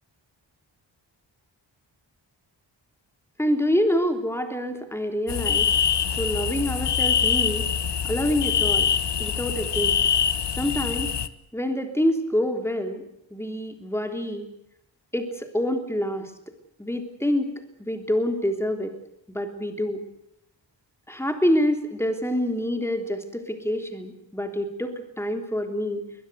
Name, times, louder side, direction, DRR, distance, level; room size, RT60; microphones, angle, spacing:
voice 1, 3.4-5.7 6.1-7.7 8.0-8.9 9.2-10.0 10.6-11.1 11.5-13.0 13.3-14.5 15.1-16.5 16.8-17.5 17.8-18.9 19.3-20.0 21.1-26.1, equal, 5° left, 6 dB, 3.4 m, -26 dB
sound 1, 5.3-11.3, left 7 dB, 65° left, 1.2 m, -24 dB
21.5 x 21.5 x 8.2 m, 0.79 s
wide cardioid pair, 125°, 45 cm